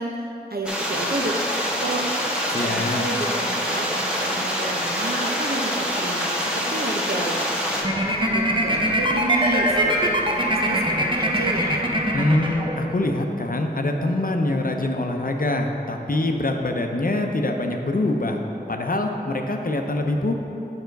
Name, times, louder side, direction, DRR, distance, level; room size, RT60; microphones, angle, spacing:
voice 1, 0.0-1.4 1.8-2.1 2.5-11.8, right 2 dB, 65° right, 1 dB, 0.8 m, -31 dB
sound 1, 0.7-7.8, equal, 5° right, 1.4 m, -25 dB
voice 2, 2.5-3.1 12.1-18.4 18.7-20.3, left 2 dB, 60° left, 3 dB, 0.6 m, -24 dB
sound 2, 7.8-13.1, equal, 30° right, 0.7 m, -22 dB
6.8 x 5.7 x 4.6 m, 2.9 s
wide cardioid pair, 40°, 17 cm